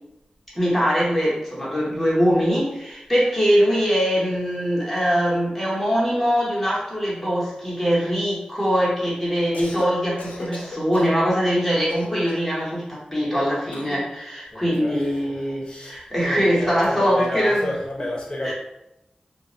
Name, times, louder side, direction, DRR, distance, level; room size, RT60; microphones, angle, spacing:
voice 1, 0.5-17.7 18.4-18.5, equal, 5° left, -7 dB, 1.1 m, -22 dB
Cough, 9.4-9.9 10.2-11.2 11.9-12.5 13.7-14.1, left 2 dB, 80° left, 0.4 m, -36 dB
voice 2, 14.5-15.1 15.7-18.5, left 1 dB, 35° left, -2 dB, 0.7 m, -31 dB
2.5 x 2.1 x 2.6 m, 0.85 s
cardioid pair, 50°, 3 cm